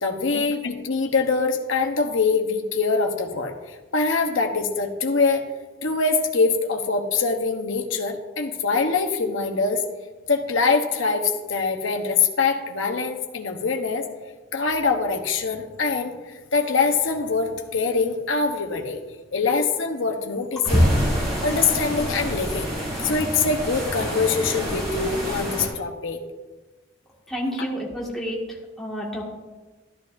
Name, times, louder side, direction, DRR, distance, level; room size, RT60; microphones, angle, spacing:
voice 1, 0.0-5.4 5.8-9.8 10.3-14.1 14.5-19.0 19.3-20.9 21.4-22.7 23.0-26.2 27.6-27.7, left 4 dB, 90° left, 3 dB, 1.0 m, -24 dB
sound 1, 20.7-25.7, equal, 30° right, 3.8 m, -28 dB
voice 2, 27.3-28.4 28.8-29.2, equal, ahead, -5 dB, 1.9 m, -29 dB
13.5 x 10.5 x 2.6 m, 1.2 s
head